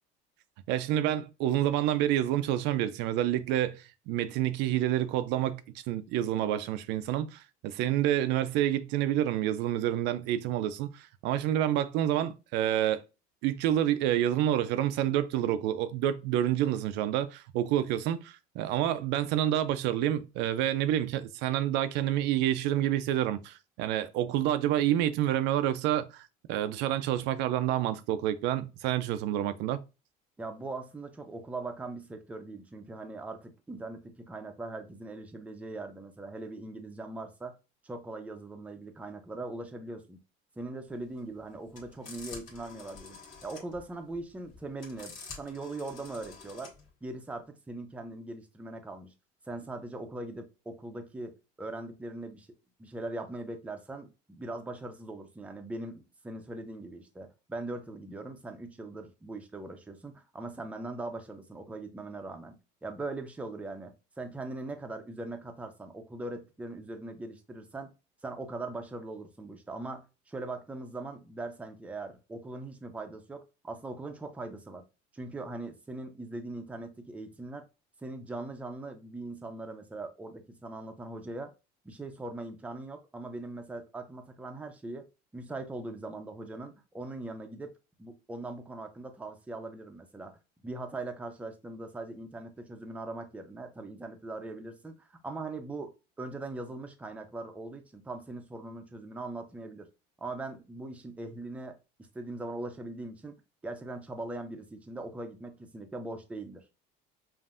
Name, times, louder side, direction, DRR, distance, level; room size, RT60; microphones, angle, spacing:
voice 1, 0.7-13.0 13.4-29.8, right 12 dB, 70° right, 0.4 m, -28 dB
voice 2, 30.4-37.6 37.8-40.2 40.6-46.7 47.0-49.1 49.5-52.5 52.8-62.6 62.8-67.9 68.2-74.8 75.1-77.6 78.0-81.5 81.8-85.1 85.3-87.7 88.0-90.4 90.6-99.9 100.2-101.8 102.1-103.4 103.6-106.6, right 2 dB, 5° right, 0.5 m, -40 dB
sound 1, 41.0-46.9, left 4 dB, 45° left, 1.5 m, -48 dB
5.4 x 2.6 x 2.5 m
cardioid pair, 145°, 19 cm